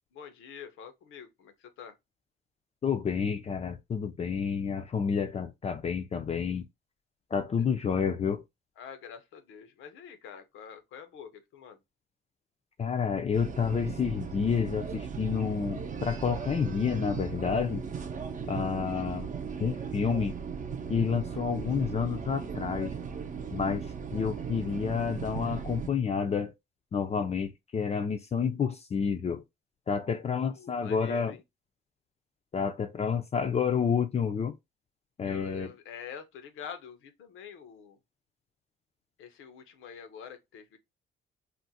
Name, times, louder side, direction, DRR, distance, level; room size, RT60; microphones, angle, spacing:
voice 1, 0.1-1.9 8.8-11.8 30.2-31.4 35.2-38.0 39.2-40.8, left 7 dB, 85° left, 0.7 m, -46 dB
voice 2, 2.8-6.7 7.3-8.4 12.8-17.8 18.5-19.3 19.6-20.3 20.9-22.9 23.5-23.9 24.1-26.5 26.9-29.4 29.9-31.3 32.5-34.5 35.2-35.7, left 6 dB, 35° left, 0.4 m, -29 dB
sound 1, 13.3-25.9, right 6 dB, 40° right, 0.6 m, -37 dB
2.5 x 2.1 x 4.0 m
cardioid pair, 90°, 20 cm